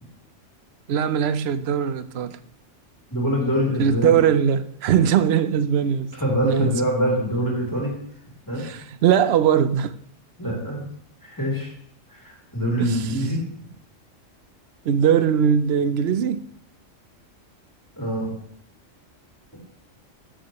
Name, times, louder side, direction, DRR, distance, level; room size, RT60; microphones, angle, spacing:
voice 1, 0.9-2.4 3.8-6.1 6.4-6.7 8.6-9.9 12.8-13.0 14.9-16.4, right 8 dB, 60° right, 0.8 m, -20 dB
voice 2, 3.1-4.2 6.1-7.9 8.5-8.6 10.4-10.8 11.2-11.7 12.1-13.4 18.0-18.3 19.5-19.6, equal, 15° left, 2.8 m, -24 dB
13.0 x 7.6 x 3.0 m
omnidirectional pair, 1.3 m